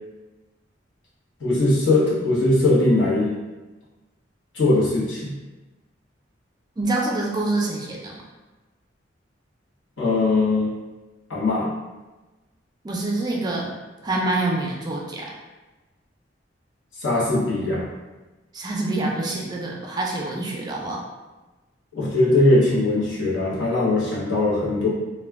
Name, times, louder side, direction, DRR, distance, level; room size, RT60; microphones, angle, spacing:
voice 1, 1.4-3.3 4.5-5.3 10.0-10.7 11.3-11.7 17.0-17.9 21.9-24.9, left 2 dB, 85° left, -6 dB, 0.9 m, -20 dB
voice 2, 6.8-8.1 12.8-13.7 14.0-15.4 18.5-21.0, right 2 dB, 20° right, -2 dB, 0.3 m, -26 dB
2.2 x 2.2 x 3.4 m, 1.2 s
head